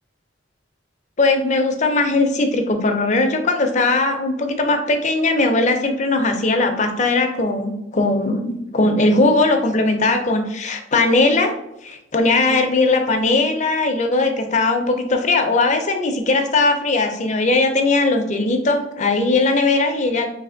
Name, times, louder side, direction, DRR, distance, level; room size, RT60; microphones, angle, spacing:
voice 1, 1.2-11.5 11.8-20.3, left 2 dB, 40° left, 5 dB, 0.5 m, -19 dB
3.2 x 2.9 x 3.8 m, 0.86 s
head